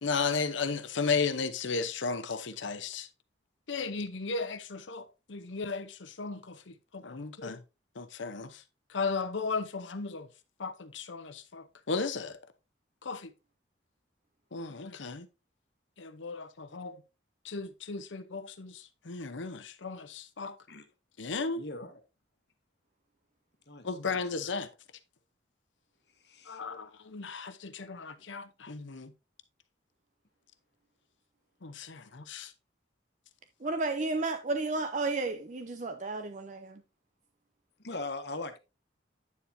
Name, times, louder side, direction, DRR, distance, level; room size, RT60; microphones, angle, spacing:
voice 1, 0.0-3.1 3.7-7.6 8.0-8.6 8.9-10.3 10.6-12.4 13.0-13.3 14.5-15.3 16.0-17.0 17.4-20.6 21.2-21.6 23.8-24.7 26.5-29.1 31.6-32.5, left 4 dB, 80° left, 0.8 m, -35 dB
voice 2, 21.6-22.0 23.7-24.2 26.2-26.6 37.8-38.6, left 2 dB, 60° left, 1.3 m, -40 dB
voice 3, 33.6-36.8, right 3 dB, 40° right, 0.5 m, -32 dB
9.7 x 7.1 x 2.7 m
head